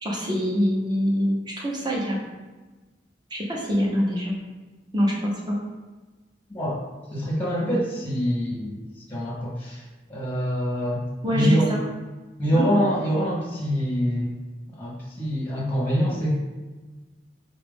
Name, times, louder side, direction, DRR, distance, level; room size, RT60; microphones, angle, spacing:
voice 1, 0.0-2.2 3.3-4.3 4.9-5.6 11.2-11.8 12.5-12.7, equal, 25° right, -3 dB, 0.7 m, -24 dB
voice 2, 6.5-6.8 7.1-8.8 9.1-9.8 10.1-11.0 11.3-11.7 12.4-14.3 14.8-16.3, equal, 10° left, -5 dB, 0.8 m, -25 dB
3.9 x 2.4 x 3.5 m, 1.2 s
head